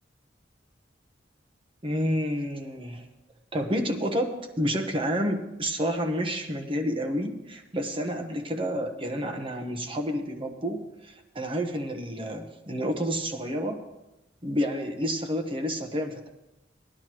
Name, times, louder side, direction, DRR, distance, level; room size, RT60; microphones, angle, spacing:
voice 1, 1.8-3.1 3.5-13.8 14.4-16.3, equal, 30° right, 4 dB, 1.2 m, -29 dB
19.0 x 11.0 x 3.1 m, 0.96 s
head